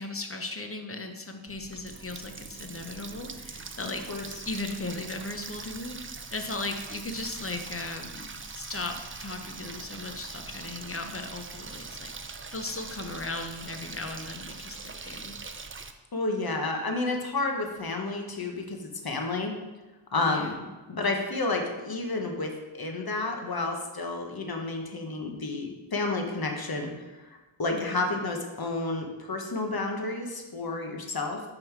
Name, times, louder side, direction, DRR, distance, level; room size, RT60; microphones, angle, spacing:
voice 1, 0.0-15.3 20.2-20.6 27.7-28.1, left 2 dB, 30° left, 5 dB, 0.7 m, -37 dB
Water tap faucet, 1.5-15.9, right 4 dB, 30° right, 0.4 m, -42 dB
voice 2, 16.1-19.5 20.1-31.4, left 3 dB, 50° left, 3 dB, 1.0 m, -31 dB
5.6 x 5.3 x 4.6 m, 1.2 s
wide cardioid pair, 75°, 48 cm